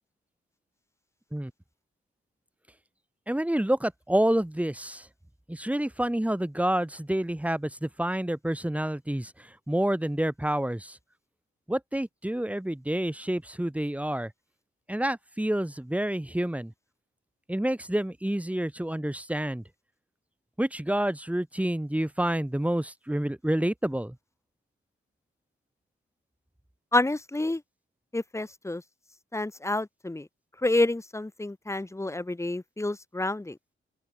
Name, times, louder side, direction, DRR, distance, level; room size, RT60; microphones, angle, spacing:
voice 1, 3.3-5.1 5.5-11.0 11.7-14.3 14.9-16.7 17.5-19.6 20.6-24.2, right 1 dB, 5° right, 5.3 m, -28 dB
voice 2, 26.9-27.6 28.1-28.8 29.3-30.3 30.6-33.6, left 2 dB, 15° left, 1.4 m, -28 dB
open air
wide cardioid pair, 105°, 21 cm